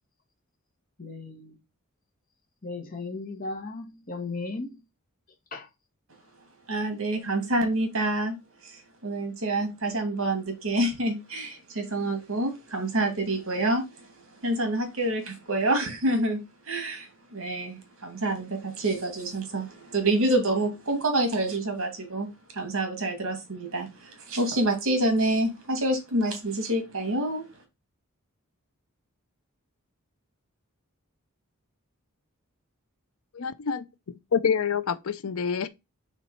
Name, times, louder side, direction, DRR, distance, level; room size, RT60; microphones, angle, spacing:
voice 1, 1.0-1.6 2.6-4.8 5.5-5.7, left 3 dB, 40° left, 1.4 m, -36 dB
voice 2, 6.7-8.4 8.6-14.1 14.4-16.4 16.7-22.3 22.5-27.5, right 1 dB, 60° right, 2.2 m, -27 dB
voice 3, 33.3-35.7, left 6 dB, 70° left, 0.5 m, -27 dB
4.4 x 4.0 x 5.4 m
head